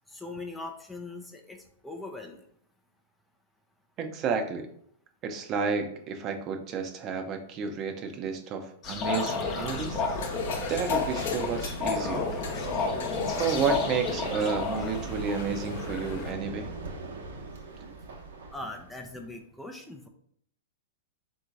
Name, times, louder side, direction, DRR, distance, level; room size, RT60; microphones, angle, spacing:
voice 1, 0.1-1.6 1.8-2.4 18.5-20.1, left 2 dB, 5° left, 2 dB, 0.5 m, -40 dB
voice 2, 4.0-4.7 5.2-10.0 10.7-12.3 13.4-16.7, right 5 dB, 35° right, 5 dB, 0.7 m, -31 dB
sound 1, 8.8-16.3, left 4 dB, 30° left, 0.8 m, -32 dB
sound 2, 9.1-16.3, left 4 dB, 65° left, 0.8 m, -40 dB
sound 3, 9.4-19.3, right 4 dB, 75° right, 1.0 m, -40 dB
3.6 x 2.7 x 4.5 m, 0.65 s
hypercardioid pair, 120°, 0 cm